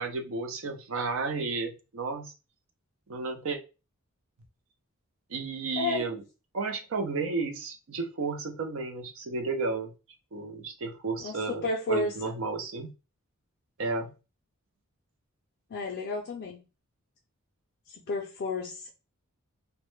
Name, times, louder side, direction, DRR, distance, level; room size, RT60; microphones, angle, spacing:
voice 1, 0.0-2.3 3.1-3.6 5.3-6.2 6.5-9.9 10.3-12.9 13.8-14.1, right 4 dB, 65° right, 5 dB, 0.5 m, -32 dB
voice 2, 5.8-6.2 11.2-12.3 15.7-16.6 17.9-18.9, left 2 dB, 50° left, 0 dB, 0.4 m, -32 dB
2.1 x 2.1 x 3.0 m, 0.30 s
head